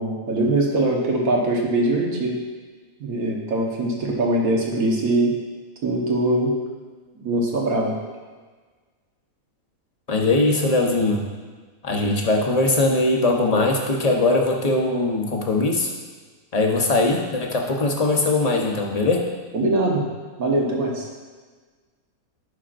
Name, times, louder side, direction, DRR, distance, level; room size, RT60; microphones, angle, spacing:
voice 1, 0.0-2.4 3.0-5.3 5.8-6.5 7.2-7.9 19.5-20.0 20.4-21.0, right 1 dB, 75° right, -1 dB, 1.6 m, -22 dB
voice 2, 10.1-11.2 11.8-15.9 16.5-19.3, left 2 dB, 35° left, 0 dB, 0.8 m, -20 dB
11.5 x 5.7 x 2.5 m, 1.4 s
omnidirectional pair, 1.5 m